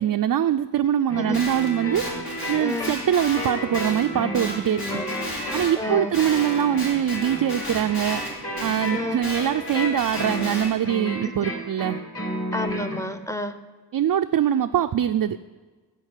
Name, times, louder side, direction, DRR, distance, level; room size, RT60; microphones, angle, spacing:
voice 1, 0.0-2.1 2.5-4.8 5.5-8.2 8.6-12.0 13.9-15.4, right 10 dB, 60° right, 6 dB, 0.5 m, -23 dB
sound 1, 1.1-13.0, equal, 35° left, 2.7 m, -32 dB
Guitar, 1.3-5.8 6.1-10.7, equal, 65° left, 4.7 m, -33 dB
voice 2, 2.6-2.9 4.7-5.1 5.7-6.1 8.9-9.2 11.2-11.3 12.5-13.6, left 2 dB, 5° left, 8 dB, 0.8 m, -30 dB
15.5 x 5.3 x 8.1 m, 1.4 s
wide cardioid pair, 115°, 40 cm